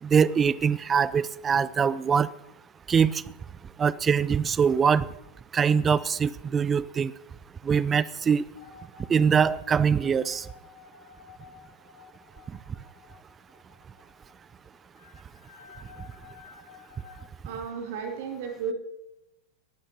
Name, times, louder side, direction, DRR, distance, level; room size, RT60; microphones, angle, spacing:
voice 1, 0.0-2.3 2.9-3.2 3.8-5.1 5.5-7.1 7.6-8.4 9.1-10.5, right 6 dB, 20° right, 19 dB, 0.5 m, -23 dB
sound 1, 8.5-17.3, left 6 dB, 60° left, 2.2 m, -52 dB
voice 2, 17.4-18.7, right 6 dB, 50° right, 3 dB, 2.4 m, -33 dB
21.5 x 12.0 x 2.9 m, 0.86 s
figure-of-eight pair, 90°, 0 cm